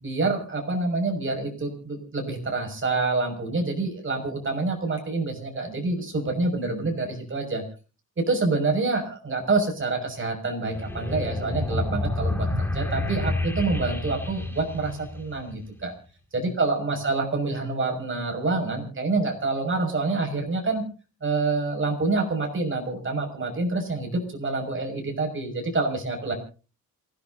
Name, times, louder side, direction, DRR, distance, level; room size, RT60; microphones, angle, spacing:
voice 1, 0.0-7.6 8.2-15.9 16.3-20.8 21.2-26.3, right 3 dB, 40° right, 3 dB, 6.2 m, -27 dB
sound 1, 10.7-15.7, left 2 dB, 5° left, 2.4 m, -29 dB
27.5 x 17.5 x 2.8 m, 0.36 s
wide cardioid pair, 140°, 31 cm